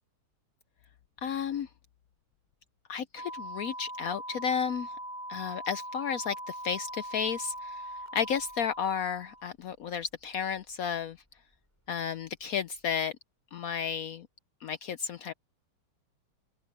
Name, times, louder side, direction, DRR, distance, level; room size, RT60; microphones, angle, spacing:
voice 1, 1.2-1.7 2.9-4.9 5.3-11.2 11.9-13.1 13.5-14.3 14.6-15.3, left 7 dB, 85° left, 0.7 m, -33 dB
sound 1, 3.2-9.5, right 1 dB, 5° left, 7.1 m, -41 dB
open air
omnidirectional pair, 2.3 m